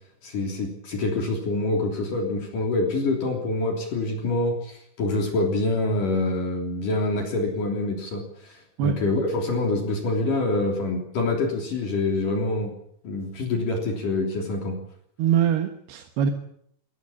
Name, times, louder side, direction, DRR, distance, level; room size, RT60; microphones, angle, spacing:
voice 1, 0.2-12.7 13.0-14.8, left 2 dB, 55° left, 2 dB, 4.8 m, -26 dB
voice 2, 15.2-16.3, right 8 dB, 80° right, 6 dB, 3.5 m, -23 dB
22.5 x 18.0 x 8.6 m, 0.69 s
omnidirectional pair, 4.6 m